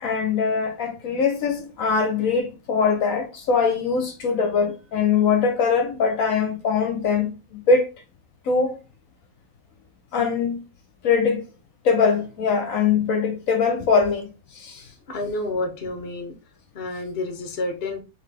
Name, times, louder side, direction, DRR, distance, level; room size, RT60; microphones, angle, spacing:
voice 1, 0.0-7.9 8.4-8.8 10.1-10.6 11.0-11.4 11.8-14.9, left 5 dB, 70° left, 1.1 m, -22 dB
voice 2, 15.1-16.4 16.7-18.0, left 2 dB, 45° left, 1.0 m, -29 dB
3.9 x 3.4 x 3.3 m
omnidirectional pair, 1.5 m